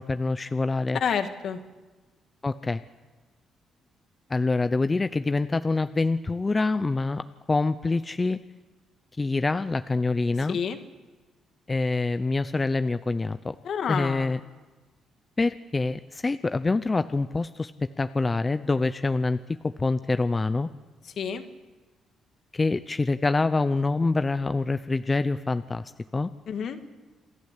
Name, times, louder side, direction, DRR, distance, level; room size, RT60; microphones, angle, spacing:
voice 1, 0.0-1.0 2.4-2.8 4.3-8.4 9.2-10.6 11.7-13.5 13.9-14.4 15.4-17.7 18.0-19.4 19.6-20.7 22.5-25.8 26.1-26.3, left 3 dB, 25° left, 12 dB, 0.6 m, -25 dB
voice 2, 0.9-1.6 10.5-10.8 13.6-14.3 21.0-21.4 26.5-26.8, left 7 dB, 65° left, 7 dB, 1.8 m, -29 dB
27.5 x 12.0 x 8.3 m, 1.3 s
cardioid pair, 90°, 0 cm